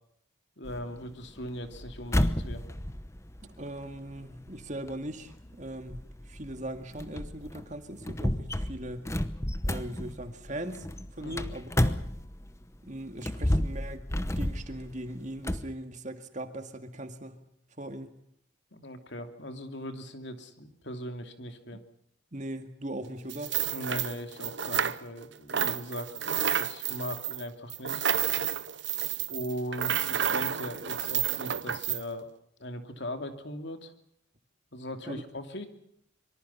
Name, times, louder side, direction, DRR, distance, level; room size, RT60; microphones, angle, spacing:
voice 1, 0.6-2.6 11.2-11.4 18.7-21.8 23.7-28.1 29.3-32.3 32.6-33.9 34.7-35.7, equal, 55° left, 7 dB, 2.8 m, -39 dB
sound 1, 0.7-12.6 13.1-15.7, left 1 dB, 15° left, 0.9 m, -32 dB
voice 2, 3.4-9.1 9.6-10.9 11.1-12.1 12.9-17.5 17.8-18.2 21.7-21.8 22.3-23.6 35.1-35.2, right 1 dB, 35° right, 8 dB, 2.1 m, -40 dB
sound 2, 23.3-25.2 25.5-32.0, right 9 dB, 60° right, 0.8 m, -30 dB
25.5 x 24.0 x 5.7 m, 0.70 s
head